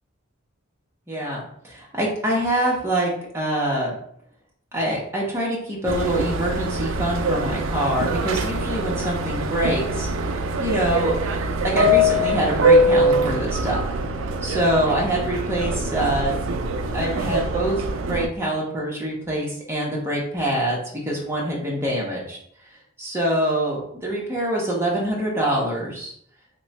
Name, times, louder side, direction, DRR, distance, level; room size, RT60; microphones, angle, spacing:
voice 1, 1.1-4.0 4.7-10.1 10.6-11.2 11.6-13.8 14.4-16.3 16.9-22.4 23.0-26.1, right 1 dB, 10° right, -4 dB, 0.9 m, -25 dB
Subway metro underground, 5.9-18.3, equal, 85° right, 0.4 m, -23 dB
3.0 x 2.2 x 4.0 m, 0.66 s
head